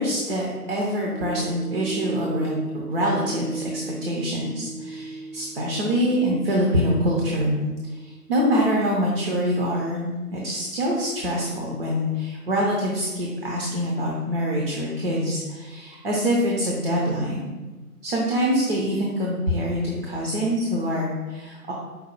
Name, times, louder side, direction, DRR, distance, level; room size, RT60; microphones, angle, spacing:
voice 1, 0.0-7.6 7.9-17.5 18.0-21.7, equal, 40° right, -3 dB, 0.7 m, -25 dB
sound 1, 1.1-9.5 10.0-10.1, right 3 dB, 90° right, 1.1 m, -37 dB
5.1 x 2.2 x 4.4 m, 1.3 s
figure-of-eight pair, 135°, 46 cm